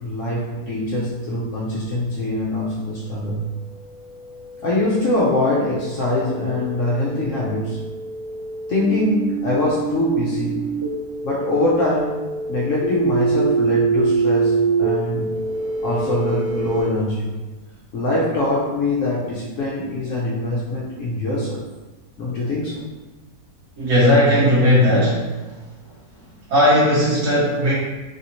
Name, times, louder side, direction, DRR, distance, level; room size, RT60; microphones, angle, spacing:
voice 1, 0.0-3.4 4.6-7.8 8.7-10.6 11.2-12.1 12.5-15.3 15.8-17.3 17.9-21.6 22.2-22.8 23.8-23.9, left 1 dB, 65° left, -5 dB, 0.8 m, -23 dB
sound 1, 3.6-16.8, right 4 dB, 40° left, 0.5 m, -25 dB
voice 2, 23.8-25.3 26.5-27.8, equal, 70° right, -10 dB, 1.4 m, -16 dB
3.3 x 2.7 x 2.8 m, 1.2 s
omnidirectional pair, 1.7 m